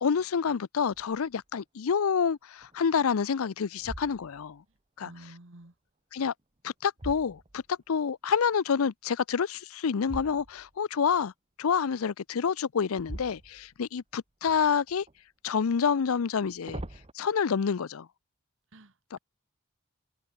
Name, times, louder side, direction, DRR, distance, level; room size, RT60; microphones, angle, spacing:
voice 1, 0.0-4.6 5.0-5.1 6.1-6.3 6.6-11.3 11.6-15.0 15.4-16.8 17.1-18.1, left 6 dB, 80° left, 0.5 m, -28 dB
sound 1, 0.9-1.4 1.9-2.0 2.6-3.2 3.7-4.6 6.3-8.0 10.0-10.8 12.9-14.0 14.5-15.2 16.2-17.1, right 1 dB, 30° right, 1.3 m, -44 dB
voice 2, 4.7-5.8 18.7-19.2, right 1 dB, 65° right, 1.9 m, -52 dB
head